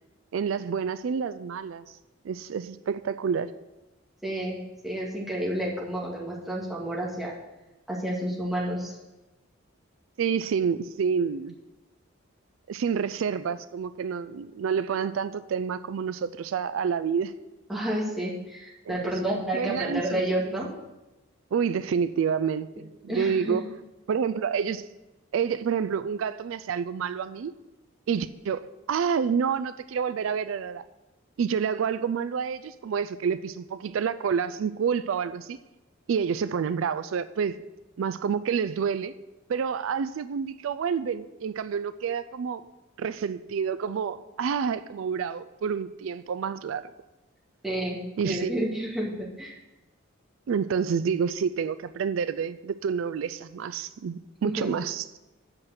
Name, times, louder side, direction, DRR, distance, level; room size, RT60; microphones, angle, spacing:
voice 1, 0.3-1.8 2.2-3.5 10.2-11.5 12.7-17.3 18.9-19.0 19.5-20.2 21.5-23.7 24.1-24.9 25.3-27.5 28.1-30.8 31.4-35.6 36.1-37.6 38.0-39.1 39.5-42.6 43.0-46.8 48.2-48.7 50.5-55.0, right 6 dB, 75° right, 14 dB, 0.3 m, -28 dB
voice 2, 4.2-4.6 4.8-7.3 7.9-9.0 17.7-20.7 23.1-23.6 47.6-48.0 48.2-49.6 54.4-54.7, right 1 dB, ahead, -5 dB, 2.0 m, -30 dB
7.8 x 5.8 x 7.8 m, 1.0 s
head